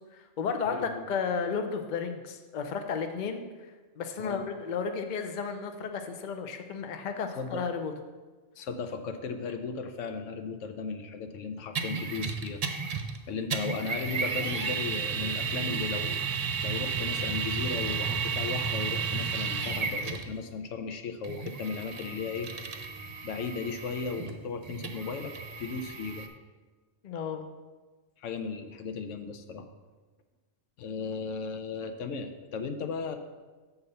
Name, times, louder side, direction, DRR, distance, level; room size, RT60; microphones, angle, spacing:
voice 1, 0.1-3.4 4.0-7.9 27.0-27.4, left 5 dB, 50° left, 6 dB, 0.7 m, -33 dB
voice 2, 0.7-1.1 4.2-4.4 7.4-7.6 8.6-12.6 13.3-16.2 16.6-22.7 23.2-26.3 28.2-29.7 30.8-33.2, left 5 dB, 80° left, 7 dB, 1.0 m, -36 dB
sound 1, 11.7-13.2 13.5-20.3 21.2-26.3, right 5 dB, 45° right, 0.5 m, -33 dB
7.1 x 4.1 x 6.7 m, 1.3 s
omnidirectional pair, 1.3 m